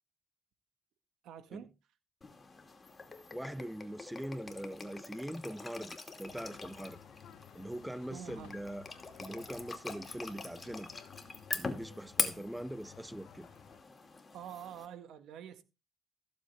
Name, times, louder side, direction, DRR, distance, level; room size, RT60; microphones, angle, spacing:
voice 1, 1.2-1.7 8.1-8.6 9.3-9.5 14.3-15.6, right 9 dB, 85° right, 1.7 m, -47 dB
sound 1, 2.2-14.9, left 3 dB, 25° left, 2.4 m, -43 dB
voice 2, 3.3-7.0 7.5-8.9 9.2-10.9 11.5-13.5, right 1 dB, 5° right, 0.6 m, -42 dB
sound 2, 6.3-13.8, left 10 dB, 85° left, 1.2 m, -56 dB
15.5 x 7.2 x 3.6 m
cardioid pair, 90°, 0 cm